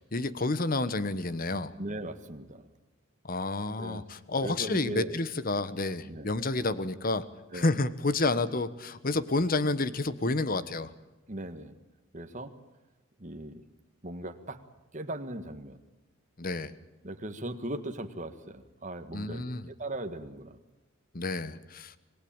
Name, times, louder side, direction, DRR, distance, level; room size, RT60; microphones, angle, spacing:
voice 1, 0.1-1.7 3.2-7.2 7.5-10.9 16.4-16.8 19.1-19.7 21.1-21.9, left 2 dB, 45° left, 15 dB, 1.2 m, -30 dB
voice 2, 1.8-2.7 3.8-4.0 4.4-5.2 6.1-6.3 7.5-7.8 8.3-8.4 11.3-11.7 12.1-12.5 13.2-13.6 14.0-14.6 14.9-15.8 17.0-19.5 19.8-20.6, right 1 dB, 35° right, 8 dB, 1.7 m, -38 dB
26.0 x 19.0 x 8.8 m, 1.1 s
head